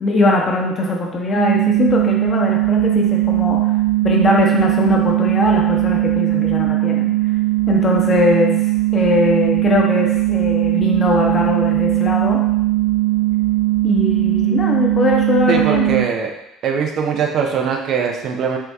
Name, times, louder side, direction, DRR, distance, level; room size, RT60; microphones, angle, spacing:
voice 1, 0.0-3.6 4.0-7.1 7.7-8.6 8.9-12.4 13.8-15.8, left 2 dB, 40° left, -1 dB, 0.8 m, -20 dB
sound 1, 1.3-16.0, right 19 dB, 65° left, 1.4 m, -18 dB
voice 2, 15.5-16.3 16.6-18.6, right 6 dB, 55° right, 2 dB, 0.5 m, -21 dB
4.4 x 2.6 x 2.3 m, 0.85 s
hypercardioid pair, 55°, 0 cm